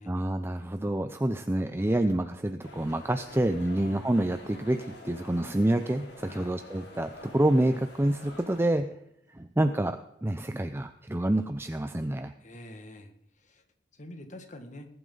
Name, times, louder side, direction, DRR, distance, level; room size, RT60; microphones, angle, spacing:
voice 1, 0.1-8.9 9.3-12.3, right 1 dB, 15° right, 8 dB, 0.5 m, -28 dB
sound 1, 2.6-8.7, left 2 dB, 70° left, 2.9 m, -48 dB
voice 2, 3.7-4.1 6.2-6.6 12.4-13.6 13.9-14.9, left 1 dB, 45° left, 6 dB, 1.8 m, -46 dB
20.0 x 11.0 x 3.9 m, 0.77 s
head